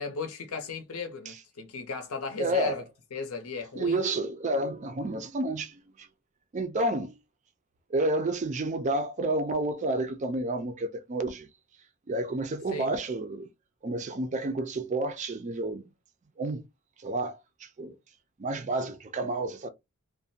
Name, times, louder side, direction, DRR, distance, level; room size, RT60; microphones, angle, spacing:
voice 1, 0.0-2.8 3.1-4.0 12.7-12.9, left 4 dB, 85° left, 0.7 m, -35 dB
voice 2, 2.4-2.8 3.8-6.1 6.5-7.2 7.9-11.5 12.1-13.5 13.8-15.9 16.4-16.6 17.0-17.9 18.4-19.7, right 2 dB, 35° right, 0.4 m, -30 dB
2.4 x 2.1 x 2.6 m
head